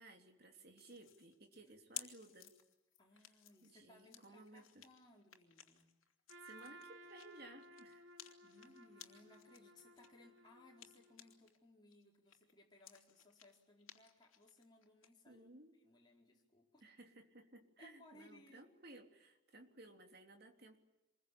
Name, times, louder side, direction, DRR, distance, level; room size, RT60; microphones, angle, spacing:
voice 1, 0.0-2.5 3.6-4.8 6.4-8.1 15.2-15.7 16.8-20.8, right 2 dB, 50° right, 4 dB, 3.2 m, -58 dB
sound 1, 0.8-11.6 11.9-15.1, left 12 dB, 85° left, 2.9 m, -57 dB
voice 2, 3.0-5.9 8.4-15.6 15.8-16.8 17.8-18.7, left 1 dB, 20° left, -2 dB, 4.5 m, -65 dB
Trumpet, 6.3-11.4, right 1 dB, 65° right, 2.0 m, -59 dB
27.0 x 22.0 x 8.7 m, 1.0 s
head